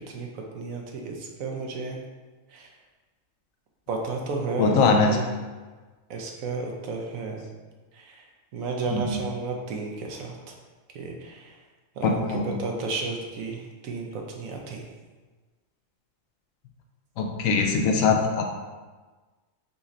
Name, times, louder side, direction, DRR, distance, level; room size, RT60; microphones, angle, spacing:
voice 1, 0.0-2.0 2.5-2.7 3.9-5.3 6.1-7.4 7.9-8.2 8.5-10.4 10.9-11.5 12.0-14.9, right 3 dB, 85° right, 1 dB, 1.1 m, -33 dB
voice 2, 4.6-5.1 8.9-9.2 12.0-12.5 17.2-18.5, left 4 dB, 80° left, 2 dB, 1.0 m, -22 dB
4.2 x 2.5 x 4.0 m, 1.3 s
omnidirectional pair, 1.4 m